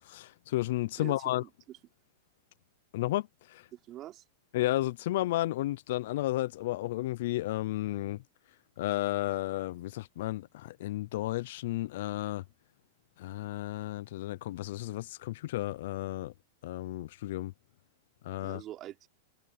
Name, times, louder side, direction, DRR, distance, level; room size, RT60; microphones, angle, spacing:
voice 1, 0.0-1.4 2.9-3.7 4.5-8.2 8.8-12.4 13.2-16.3 16.6-17.5 18.2-18.6, left 16 dB, 60° left, 0.4 m, -33 dB
voice 2, 1.0-1.8 3.7-4.2 18.4-19.1, right 13 dB, 30° right, 3.4 m, -45 dB
supercardioid pair, 155°, 0 cm